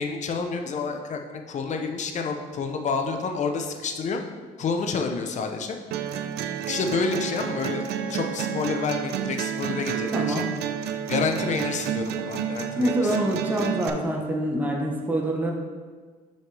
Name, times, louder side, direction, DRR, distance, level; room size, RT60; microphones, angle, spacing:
voice 1, 0.0-4.2 4.6-5.8 6.6-10.4 11.1-13.2, left 4 dB, 45° left, 4 dB, 0.7 m, -29 dB
sound 1, 5.9-13.9, right 8 dB, 75° right, 0.5 m, -30 dB
voice 2, 10.1-10.5 12.8-15.5, right 1 dB, 10° right, -1 dB, 0.9 m, -25 dB
6.0 x 5.6 x 3.3 m, 1.5 s
cardioid pair, 110°, 17 cm